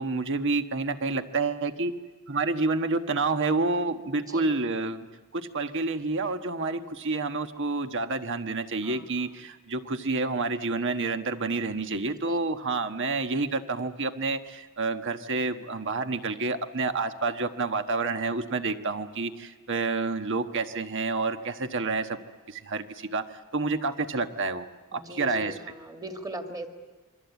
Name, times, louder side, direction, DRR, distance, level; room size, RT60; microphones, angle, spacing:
voice 1, 0.0-1.9 2.3-5.1 5.3-22.2 22.5-23.3 23.5-24.6 24.9-25.5, right 3 dB, 55° right, 8 dB, 1.3 m, -29 dB
voice 2, 4.3-4.6 8.8-9.3 12.2-12.4 24.9-26.7, right 1 dB, 15° right, 5 dB, 2.2 m, -40 dB
27.5 x 24.0 x 8.2 m, 1.4 s
head